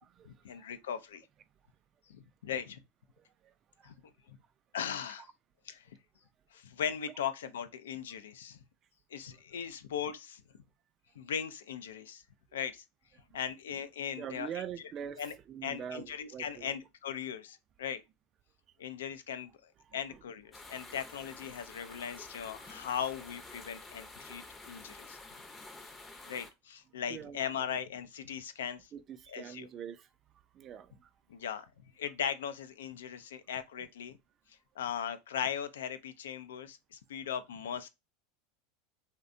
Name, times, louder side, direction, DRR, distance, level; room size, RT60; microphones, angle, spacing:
voice 1, 0.3-1.3 2.1-2.8 3.8-3.9 4.3-4.4 4.7-5.3 5.7-6.0 6.5-8.6 9.1-10.4 11.2-12.2 12.5-12.8 13.3-14.6 15.2-15.3 15.6-18.0 18.8-25.2 26.3-28.9 29.3-29.7 31.3-31.7 32.0-34.2 34.8-37.9, left 8 dB, 85° left, 0.3 m, -38 dB
voice 2, 14.2-15.2 15.5-16.7 19.9-20.0 27.1-27.4 28.9-30.1 30.5-31.1, right 8 dB, 40° right, 0.3 m, -43 dB
sound 1, 20.5-26.5, left 2 dB, 20° left, 0.6 m, -50 dB
2.6 x 2.1 x 2.5 m
hypercardioid pair, 100°, 0 cm